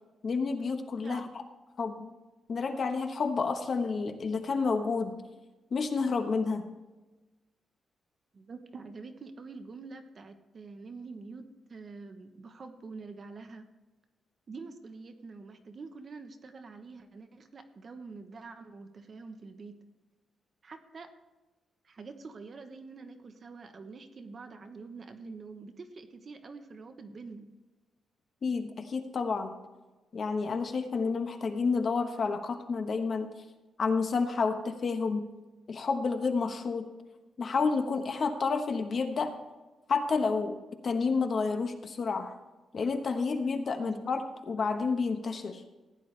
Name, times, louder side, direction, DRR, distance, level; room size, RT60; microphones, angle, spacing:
voice 1, 0.2-1.3 1.8-2.1 2.5-5.1 5.7-6.6 28.4-29.6 30.1-33.3 33.8-35.3 35.7-36.9 37.4-39.3 39.9-40.6 40.8-42.3 42.7-45.6, left 4 dB, 45° left, 6 dB, 1.1 m, -30 dB
voice 2, 1.0-1.4 8.3-13.6 14.5-19.7 20.6-21.1 21.8-27.5 43.8-44.1, right 4 dB, 40° right, 7 dB, 1.0 m, -46 dB
15.5 x 10.0 x 3.3 m, 1.2 s
wide cardioid pair, 150°, 0 cm